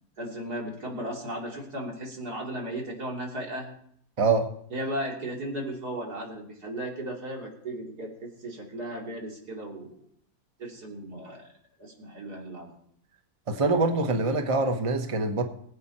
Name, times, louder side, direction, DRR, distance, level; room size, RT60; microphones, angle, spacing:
voice 1, 0.2-3.7 4.7-10.0 10.6-11.4 11.8-12.7, right 1 dB, 85° right, 3.7 m, -35 dB
voice 2, 4.2-4.5 13.5-15.4, right 3 dB, 25° right, 1.1 m, -24 dB
21.5 x 8.7 x 4.3 m
omnidirectional pair, 1.6 m